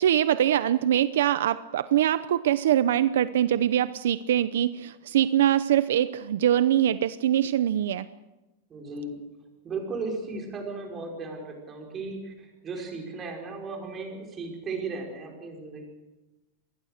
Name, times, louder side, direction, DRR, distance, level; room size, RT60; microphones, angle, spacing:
voice 1, 0.0-8.1, right 11 dB, 75° right, 14 dB, 0.8 m, -23 dB
voice 2, 8.7-9.2 9.6-15.9, right 3 dB, 20° right, 1 dB, 5.3 m, -36 dB
26.0 x 20.5 x 6.6 m, 1.1 s
supercardioid pair, 160°, 0 cm